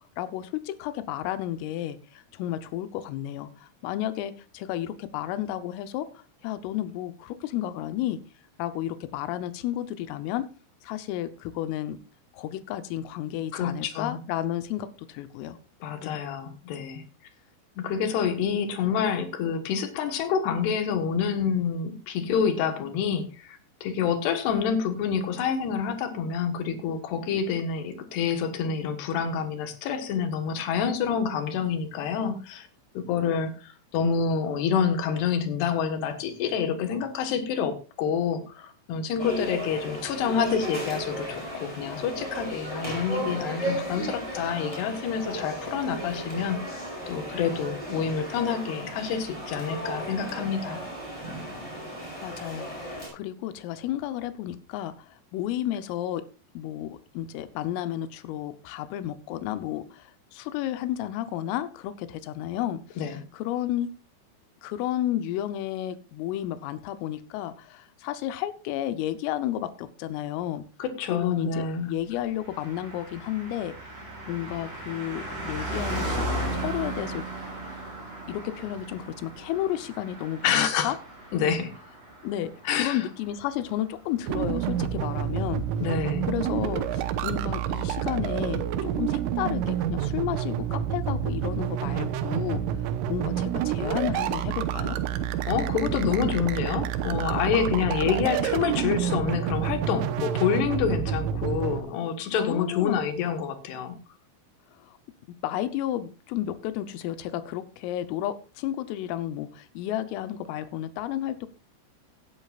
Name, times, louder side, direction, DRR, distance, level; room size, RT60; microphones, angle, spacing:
voice 1, 0.0-8.2 8.6-10.5 10.8-12.0 12.3-15.6 16.0-16.2 52.2-56.2 56.5-63.9 64.6-70.6 71.1-77.2 78.3-81.0 82.2-85.6 86.2-92.6 93.1-95.0 102.4-103.0 104.9-105.0 105.4-111.5, left 12 dB, 90° left, 12 dB, 3.5 m, -32 dB
voice 2, 13.5-14.2 15.8-17.0 17.8-32.7 32.9-50.8 63.0-63.2 70.8-71.9 80.4-81.0 81.3-81.7 82.6-83.1 85.8-86.3 95.5-104.0, left 7 dB, 65° left, 8 dB, 3.1 m, -27 dB
sound 1, 39.2-53.1, equal, 5° left, 7.6 m, -35 dB
Car passing by, 72.4-84.2 84.5-84.6, right 1 dB, 25° right, 6.3 m, -36 dB
sound 2, 84.3-101.8, right 10 dB, 85° right, 3.5 m, -28 dB
17.5 x 11.0 x 2.4 m, 0.32 s
omnidirectional pair, 5.7 m